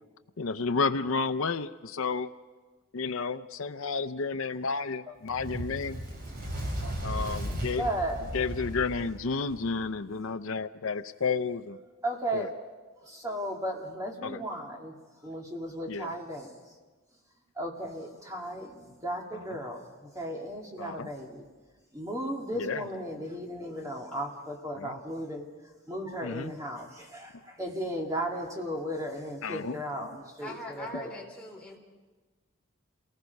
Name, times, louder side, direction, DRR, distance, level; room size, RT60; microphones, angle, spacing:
voice 1, 0.4-2.3 2.9-6.0 7.0-7.9 8.3-11.8 12.3-12.5 14.2-14.4 15.9-16.1 20.8-21.1 22.6-22.8 24.8-24.9 26.2-26.5 29.4-29.8, left 4 dB, 75° left, 12 dB, 0.6 m, -31 dB
Fire, 5.3-9.8, equal, 45° right, 3.8 m, -36 dB
voice 2, 7.7-8.3 12.0-12.5 13.0-14.9 15.2-16.5 17.6-21.5 21.9-25.5 25.9-31.1, equal, 15° right, 0 dB, 2.3 m, -35 dB
voice 3, 30.4-31.8, left 1 dB, 5° left, -3 dB, 3.8 m, -42 dB
28.5 x 19.0 x 5.4 m, 1.3 s
head